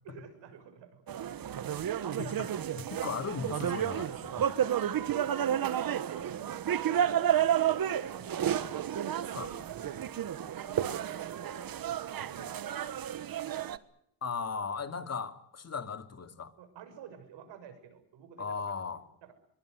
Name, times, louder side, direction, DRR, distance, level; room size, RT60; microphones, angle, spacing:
voice 1, 0.0-1.8 4.7-8.8 9.1-12.5 16.6-18.6 19.2-19.3, right 8 dB, 75° right, 10 dB, 6.6 m, -50 dB
sound 1, 1.1-13.8, right 10 dB, 50° right, 1.6 m, -31 dB
voice 2, 2.2-4.5 9.4-9.5 14.2-16.5 18.4-19.0, left 5 dB, 35° left, 8 dB, 2.7 m, -37 dB
23.5 x 21.5 x 8.1 m, 0.73 s
cardioid pair, 90°, 43 cm